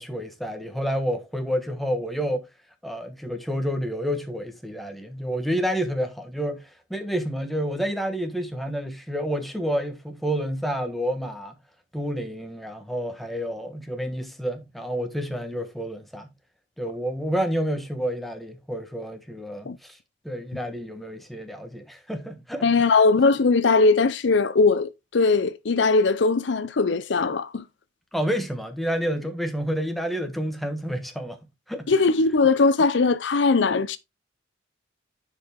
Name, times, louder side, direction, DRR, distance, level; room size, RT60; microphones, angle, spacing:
voice 1, 0.0-2.4 2.8-11.5 11.9-16.3 16.8-20.0 20.2-22.9 28.1-31.4 31.7-31.9, equal, ahead, 1.3 m, -29 dB
voice 2, 22.6-27.6 31.9-34.0, left 4 dB, 70° left, 0.6 m, -20 dB
10.0 x 4.9 x 3.6 m
head